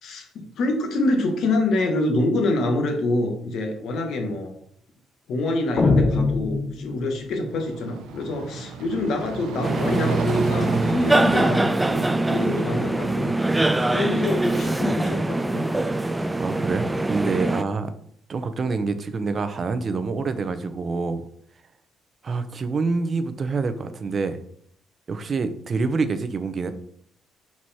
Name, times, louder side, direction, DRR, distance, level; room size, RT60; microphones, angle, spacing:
voice 1, 0.0-4.6 5.3-13.4 13.9-15.7, left 2 dB, 70° left, 4 dB, 1.5 m, -26 dB
sound 1, 5.8-7.4, left 3 dB, 35° left, 1.0 m, -22 dB
sound 2, 7.3-13.4, right 4 dB, 90° right, 0.9 m, -32 dB
sound 3, 9.6-17.6, right 2 dB, 10° right, 0.4 m, -23 dB
voice 2, 16.1-17.9 18.3-21.2 22.2-24.4 25.1-26.7, right 4 dB, 40° right, 10 dB, 0.7 m, -26 dB
5.9 x 4.7 x 4.3 m, 0.64 s
cardioid pair, 105°, 0 cm